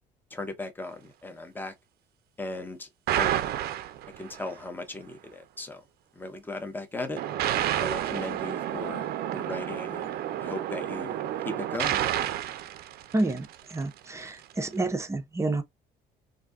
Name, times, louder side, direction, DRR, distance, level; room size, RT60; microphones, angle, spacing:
voice 1, 0.3-1.7 2.4-2.9 3.1-3.3 4.2-5.8 6.1-7.2 7.8-11.2 11.4-12.0, left 2 dB, 10° left, 0.8 m, -37 dB
sound 1, 3.1-4.5 7.2-13.7, right 12 dB, 65° right, 0.5 m, -30 dB
voice 2, 13.1-15.6, right 2 dB, 15° right, 0.6 m, -29 dB
2.7 x 2.3 x 3.5 m
cardioid pair, 110°, 17 cm